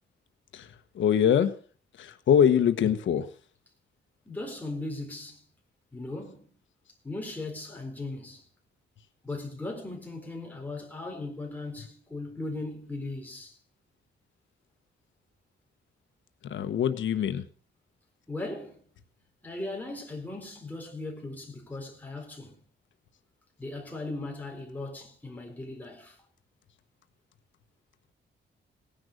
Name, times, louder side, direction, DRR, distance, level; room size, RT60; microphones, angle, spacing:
voice 1, 0.5-1.5 2.0-3.3 16.4-17.4, left 8 dB, 85° left, 1.1 m, -24 dB
voice 2, 4.3-5.4 5.9-6.4 7.0-8.4 9.2-13.6 18.3-18.8 19.4-22.6 23.6-26.2, left 2 dB, 10° left, 4.2 m, -38 dB
17.5 x 10.5 x 6.5 m
wide cardioid pair, 155°, 19 cm